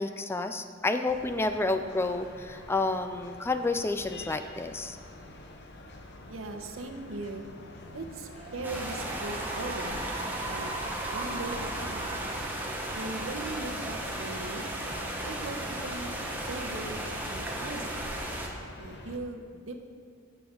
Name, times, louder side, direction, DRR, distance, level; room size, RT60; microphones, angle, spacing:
voice 1, 0.0-5.0, left 2 dB, 10° left, 8 dB, 0.3 m, -30 dB
sound 1, 1.1-19.2, left 1 dB, 60° left, 0.9 m, -47 dB
voice 2, 6.3-7.4 7.9-10.1 10.5-10.8 11.1-12.1 12.9-14.7 15.2-16.2 16.4-17.9 18.8-19.8, right 2 dB, 80° right, 5 dB, 0.9 m, -39 dB
Cheering / Applause, 8.2-14.9, right 3 dB, 25° right, 0.8 m, -41 dB
sound 2, 8.6-18.5, right 1 dB, 10° right, 1.1 m, -35 dB
13.0 x 6.9 x 3.8 m, 2.1 s
head